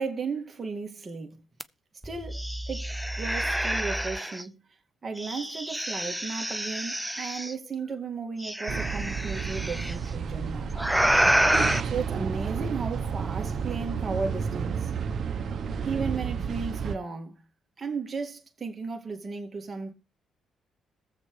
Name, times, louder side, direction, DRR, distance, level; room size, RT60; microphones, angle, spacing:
voice 1, 0.0-1.4 2.0-2.9 3.2-4.6 5.0-10.7 11.8-14.9 15.8-17.3 17.8-19.9, right 4 dB, 30° right, 2.1 m, -35 dB
sound 1, 1.6-1.7 2.0-4.4 5.2-7.5 8.4-9.9 10.7-11.8, right 1 dB, 5° right, 0.5 m, -28 dB
sound 2, 8.7-17.0, right 6 dB, 55° right, 1.0 m, -31 dB
21.0 x 7.5 x 3.3 m
cardioid pair, 90°, 0 cm